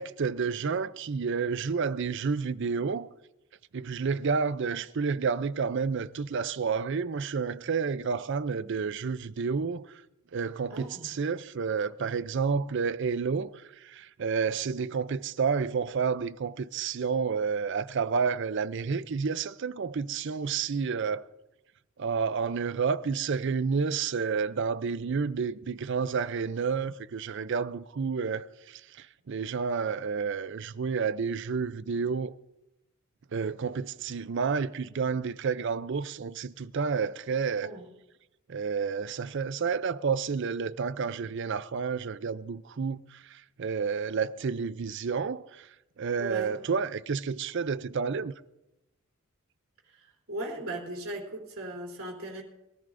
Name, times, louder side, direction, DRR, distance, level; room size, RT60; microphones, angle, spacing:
voice 1, 0.0-3.1 3.7-10.0 10.3-21.3 22.0-32.4 33.3-37.7 38.5-45.7 46.0-48.3, right 5 dB, 60° right, 0.5 m, -30 dB
voice 2, 10.7-11.1 12.6-12.7 37.6-37.9 46.2-46.5 50.3-52.4, right 1 dB, 75° right, 3.5 m, -37 dB
22.5 x 14.0 x 2.6 m
head